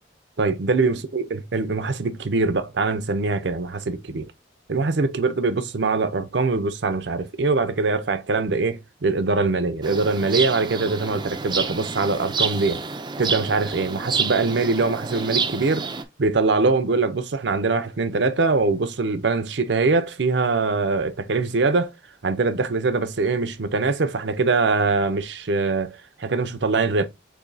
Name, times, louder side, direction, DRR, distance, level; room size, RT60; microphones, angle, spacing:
voice 1, 0.4-4.3 4.7-12.8 13.2-15.9 16.2-21.9 22.2-27.1, right 3 dB, 65° right, 0.6 m, -23 dB
sound 1, 9.8-16.0, right 5 dB, 25° right, 0.5 m, -28 dB
6.8 x 2.8 x 2.6 m
head